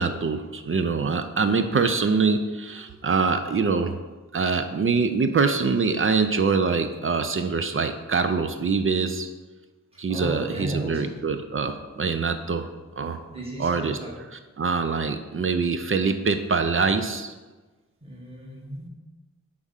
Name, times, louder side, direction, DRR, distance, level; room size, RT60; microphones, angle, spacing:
voice 1, 0.0-4.0 4.3-9.3 10.0-12.7 13.0-13.2 13.6-13.9 14.6-17.3, right 4 dB, 45° right, 8 dB, 0.4 m, -24 dB
voice 2, 10.1-11.2 13.3-14.1 18.0-18.9, right 1 dB, 20° right, -4 dB, 1.8 m, -34 dB
4.7 x 3.6 x 5.5 m, 1.2 s
wide cardioid pair, 65°, 30 cm